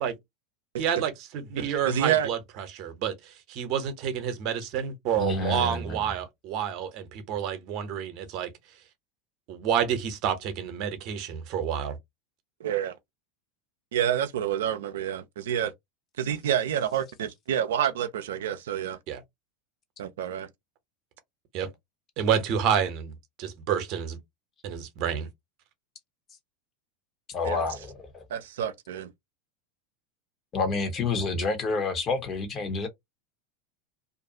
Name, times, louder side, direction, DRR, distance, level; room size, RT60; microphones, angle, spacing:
voice 1, 0.8-8.5 9.5-12.0 19.1-19.2 21.5-21.7 22.2-24.2 24.6-25.3, right 8 dB, 50° right, 0.8 m, -29 dB
voice 2, 1.6-2.3 12.6-13.0 13.9-15.7 16.2-19.0 20.0-20.5 27.4-27.6 28.3-29.1, right 10 dB, 70° right, 0.4 m, -28 dB
voice 3, 5.2-6.0 27.3-28.2 30.5-32.9, left 3 dB, 35° left, 0.9 m, -29 dB
2.5 x 2.2 x 2.7 m
figure-of-eight pair, 85°, 0 cm